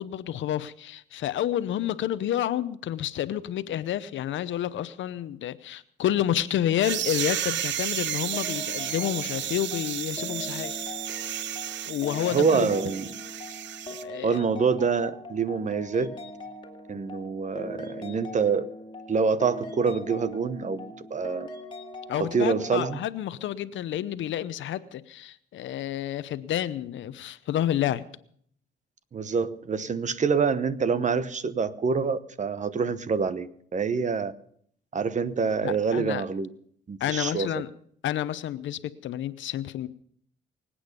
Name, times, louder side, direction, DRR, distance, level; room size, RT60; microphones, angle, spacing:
voice 1, 0.0-10.7 11.9-12.7 13.9-14.4 22.1-28.0 35.6-36.2 37.0-37.7 38.0-39.9, left 11 dB, 75° left, 15 dB, 0.8 m, -29 dB
sound 1, 6.8-14.0, right 12 dB, 65° right, 0.6 m, -32 dB
sound 2, 8.3-23.1, left 1 dB, 25° left, 2.2 m, -41 dB
voice 2, 12.3-13.1 14.2-16.2 16.9-18.7 19.1-21.5 22.1-23.0 29.1-34.3 34.9-36.5 36.9-37.6, right 5 dB, 35° right, 14 dB, 1.0 m, -26 dB
24.5 x 8.7 x 5.3 m, 0.63 s
cardioid pair, 90°, 20 cm